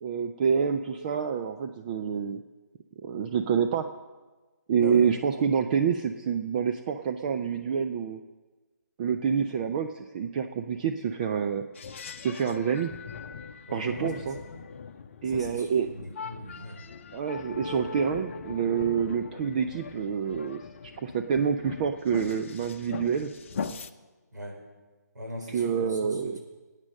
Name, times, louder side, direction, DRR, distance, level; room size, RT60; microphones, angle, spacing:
voice 1, 0.0-2.4 3.0-3.9 4.7-8.2 9.0-11.6 12.2-12.9 13.7-14.4 15.2-15.9 17.1-20.6 21.0-23.3 25.5-26.4, right 7 dB, 25° right, 6 dB, 0.6 m, -27 dB
voice 2, 4.8-5.2 13.6-14.6 15.2-16.8 24.3-24.6 25.1-26.4, equal, 75° right, 1 dB, 5.0 m, -40 dB
sound 1, 11.8-23.9, left 5 dB, 45° left, 0.8 m, -40 dB
18.5 x 9.1 x 6.6 m, 1.3 s
figure-of-eight pair, 145°, 10 cm